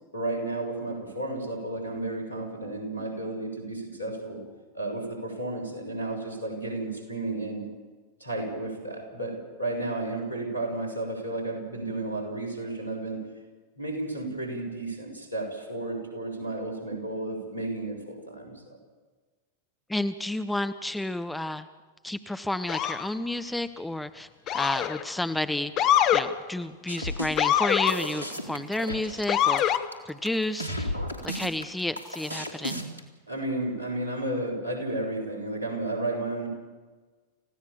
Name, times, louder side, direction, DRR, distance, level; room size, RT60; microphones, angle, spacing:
voice 1, 0.1-4.4 4.7-7.7 8.2-13.2 13.8-18.8 33.3-36.5, right 2 dB, 85° left, 3 dB, 6.5 m, -32 dB
voice 2, 19.9-21.7 22.0-24.3 24.5-29.6 30.1-31.0 31.2-32.8, left 1 dB, 5° left, 10 dB, 0.9 m, -31 dB
Motor vehicle (road) / Siren, 22.7-23.1 24.5-25.0 25.8-26.3 27.4-28.0 29.3-29.8, left 10 dB, 35° left, 1.3 m, -23 dB
sound 1, 26.9-33.0, equal, 80° right, 2.8 m, -34 dB
29.5 x 16.0 x 7.2 m, 1.3 s
figure-of-eight pair, 90°, 0 cm